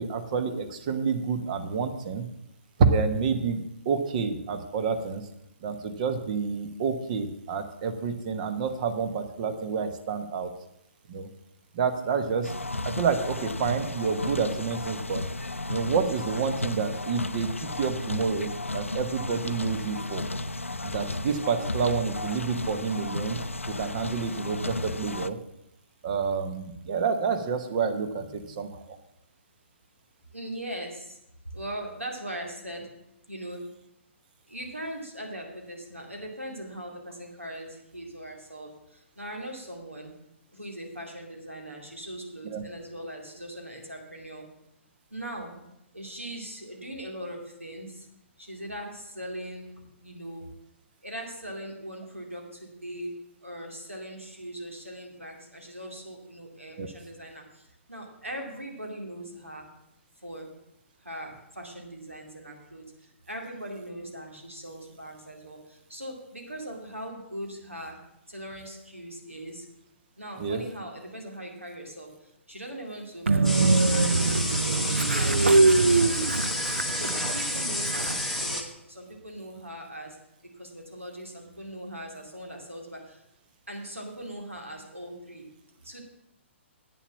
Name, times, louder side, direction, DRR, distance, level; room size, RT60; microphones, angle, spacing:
voice 1, 0.0-2.3 2.8-5.3 5.6-10.5 11.1-11.3 11.7-12.5 12.8-15.2 15.7-20.3 20.8-23.4 23.7-25.4 26.0-29.0 42.5-42.6 56.8-56.9 70.4-70.6, right 5 dB, 35° right, 9 dB, 1.0 m, -28 dB
sound 1, 12.4-25.3, left 2 dB, 85° left, 0.5 m, -34 dB
voice 2, 28.2-28.6 30.3-31.2 31.5-32.9 33.3-33.7 34.5-40.1 40.5-44.4 45.1-45.6 45.9-48.1 48.4-49.7 50.0-50.5 51.0-53.1 53.4-57.6 57.9-59.7 60.2-60.5 61.0-62.8 63.3-68.0 68.3-69.6 70.2-72.1 72.5-76.7 76.9-80.1 80.6-83.2 83.7-85.4 85.8-86.0, right 1 dB, 85° right, 1 dB, 2.4 m, -40 dB
Train, 73.3-78.5, right 3 dB, 70° right, 0.6 m, -23 dB
sound 2, 73.4-78.6, left 2 dB, ahead, 0.9 m, -30 dB
8.7 x 7.1 x 7.1 m, 0.83 s
figure-of-eight pair, 125°, 7 cm